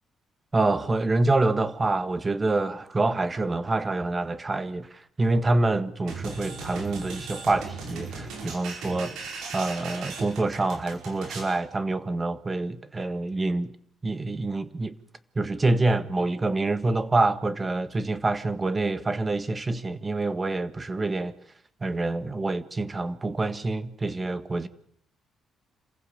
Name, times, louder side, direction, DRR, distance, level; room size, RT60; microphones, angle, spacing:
voice 1, 0.5-9.2 9.5-13.7 14.0-14.9 15.3-21.3 21.8-24.7, right 2 dB, 25° right, 1.6 m, -26 dB
sound 1, 6.1-11.6, right 4 dB, 85° right, 5.1 m, -38 dB
27.0 x 15.5 x 8.5 m
cardioid pair, 90°, 0 cm